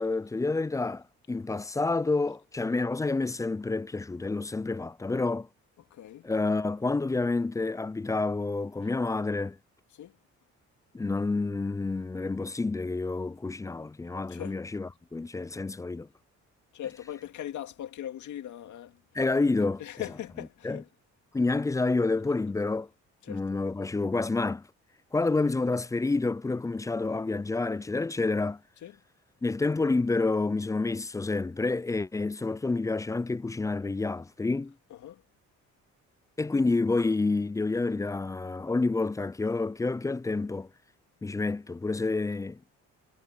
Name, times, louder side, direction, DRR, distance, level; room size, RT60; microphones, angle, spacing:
voice 1, 0.0-5.5 6.2-9.6 10.9-16.1 19.1-19.8 20.6-20.8 21.3-22.9 23.3-24.7 25.1-28.6 29.4-34.7 36.4-40.7 41.2-42.8, left 3 dB, 10° left, 0.3 m, -29 dB
voice 2, 5.9-6.3 9.9-10.2 14.3-14.6 16.7-19.0 19.8-20.9 23.2-23.6 28.8-29.0 34.9-35.2, left 11 dB, 75° left, 2.3 m, -40 dB
cardioid pair, 90°, 30 cm